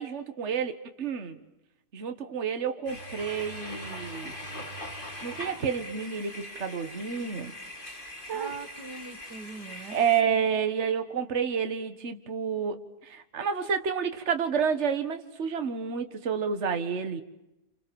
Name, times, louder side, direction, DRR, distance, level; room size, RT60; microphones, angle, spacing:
voice 1, 0.0-1.4 1.9-4.4 5.2-7.5 8.3-8.5 9.9-17.2, right 7 dB, 45° right, 8 dB, 1.9 m, -30 dB
sound 1, 2.9-10.2, left 1 dB, 30° left, 3.3 m, -41 dB
voice 2, 8.3-10.0, right 4 dB, 80° right, 10 dB, 2.3 m, -41 dB
29.0 x 28.0 x 7.1 m, 0.91 s
omnidirectional pair, 1.7 m